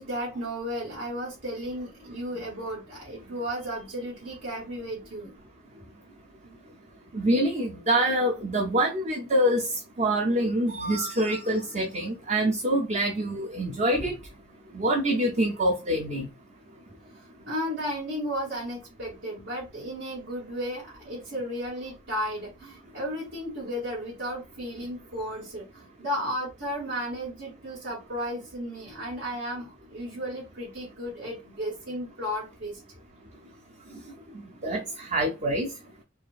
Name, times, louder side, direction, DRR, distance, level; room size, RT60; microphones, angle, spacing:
voice 1, 0.0-5.4 6.4-6.6 17.5-32.8, equal, 90° right, 2.1 m, -34 dB
voice 2, 7.1-9.6 10.0-14.1 14.7-16.3 34.6-35.7, right 1 dB, 40° right, 0.6 m, -25 dB
4.8 x 2.4 x 2.4 m
head